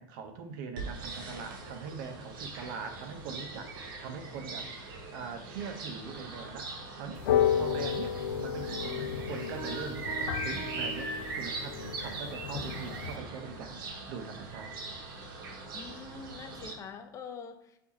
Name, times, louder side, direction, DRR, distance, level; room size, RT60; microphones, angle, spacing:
voice 1, 0.0-4.7 5.1-7.3 7.5-14.7, right 5 dB, 60° right, 6 dB, 0.7 m, -42 dB
sound 1, 0.8-16.7, right 3 dB, 90° right, 1.0 m, -41 dB
sound 2, 7.2-13.2, left 9 dB, 90° left, 0.5 m, -32 dB
sound 3, 9.6-12.0, right 6 dB, 25° right, 1.0 m, -44 dB
voice 2, 15.7-17.8, left 5 dB, 30° left, 7 dB, 0.5 m, -44 dB
4.8 x 2.7 x 4.1 m, 0.82 s
supercardioid pair, 125°, 11 cm